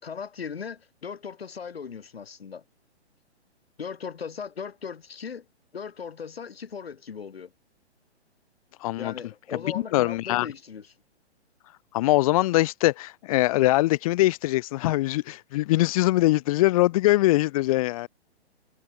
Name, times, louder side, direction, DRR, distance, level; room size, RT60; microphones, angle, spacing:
voice 1, 0.0-2.6 3.8-5.5 5.7-7.5 9.0-10.9, left 6 dB, 60° left, 4.3 m, -38 dB
voice 2, 8.8-9.1 9.7-10.5 11.9-18.1, left 18 dB, 30° left, 2.1 m, -22 dB
figure-of-eight pair, 125°, 34 cm